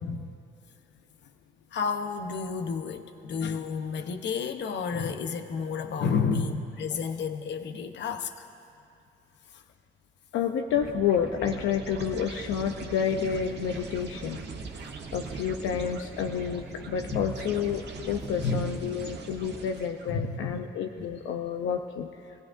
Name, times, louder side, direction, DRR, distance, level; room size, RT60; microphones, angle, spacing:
voice 1, 0.0-0.3 1.7-8.5 9.5-9.6 17.1-17.3 18.4-18.6 20.1-20.6 21.0-21.1, left 5 dB, 65° left, 7 dB, 0.9 m, -31 dB
voice 2, 10.3-14.4 15.1-22.1, left 8 dB, 85° left, 4 dB, 0.7 m, -29 dB
sound 1, 10.7-20.2, right 4 dB, 60° right, 1.3 m, -40 dB
24.5 x 16.0 x 2.6 m, 2.6 s
cardioid pair, 90°, 20 cm